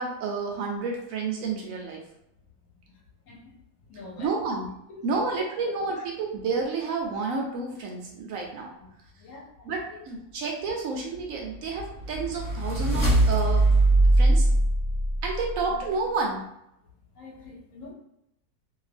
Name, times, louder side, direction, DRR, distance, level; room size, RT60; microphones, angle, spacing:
voice 1, 0.0-2.0 4.2-4.7 5.0-8.7 9.7-13.7 14.2-14.5 15.2-16.5, right 4 dB, 70° right, 0 dB, 0.9 m, -30 dB
voice 2, 3.9-4.3 4.9-5.2 5.6-5.7 6.0-6.1 8.5-8.9 9.2-10.0 15.7-15.8 17.2-17.9, left 3 dB, 65° left, -2 dB, 1.0 m, -45 dB
sound 1, 11.5-15.7, right 2 dB, 15° left, 1.0 m, -22 dB
2.7 x 2.3 x 3.2 m, 0.81 s
omnidirectional pair, 1.6 m